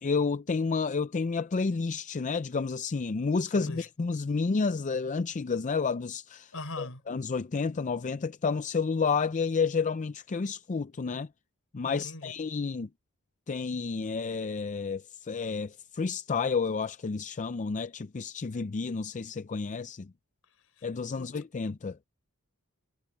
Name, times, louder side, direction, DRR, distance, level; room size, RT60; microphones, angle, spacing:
voice 1, 0.0-6.5 6.8-11.3 11.7-12.9 13.5-20.1 20.8-22.0, left 4 dB, 35° left, 0.4 m, -30 dB
voice 2, 3.5-3.9 6.5-7.0 11.8-12.3 20.8-20.9 21.1-21.3, left 2 dB, 65° left, 5.3 m, -41 dB
head